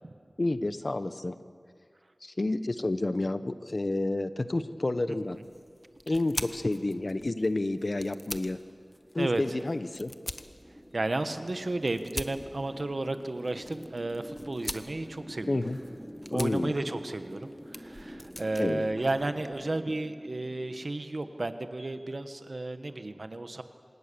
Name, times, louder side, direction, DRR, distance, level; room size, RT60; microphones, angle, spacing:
voice 1, 0.4-1.4 2.2-5.4 6.1-8.6 9.1-10.1 15.5-15.8 16.3-16.7 18.6-18.9, left 2 dB, 55° left, 12 dB, 0.9 m, -30 dB
voice 2, 5.1-5.5 9.2-9.4 10.9-15.6 16.3-23.6, right 2 dB, 65° right, 9 dB, 1.3 m, -33 dB
sound 1, 5.3-19.8, left 1 dB, 20° left, 1.1 m, -44 dB
sound 2, 5.8-21.9, equal, 5° right, 3.8 m, -48 dB
26.0 x 19.5 x 7.0 m, 2.1 s
wide cardioid pair, 45°, 0 cm